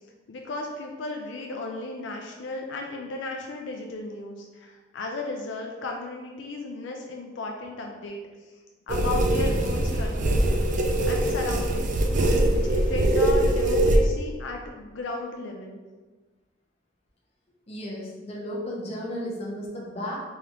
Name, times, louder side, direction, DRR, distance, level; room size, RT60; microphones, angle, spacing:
voice 1, 0.3-8.2 8.9-12.0 12.5-15.8, left 2 dB, 80° left, 1 dB, 0.4 m, -35 dB
sound 1, 8.9-14.0, right 1 dB, 40° right, 0.4 m, -22 dB
voice 2, 17.7-20.2, equal, 35° left, -4 dB, 0.8 m, -34 dB
3.6 x 3.3 x 2.9 m, 1.3 s
head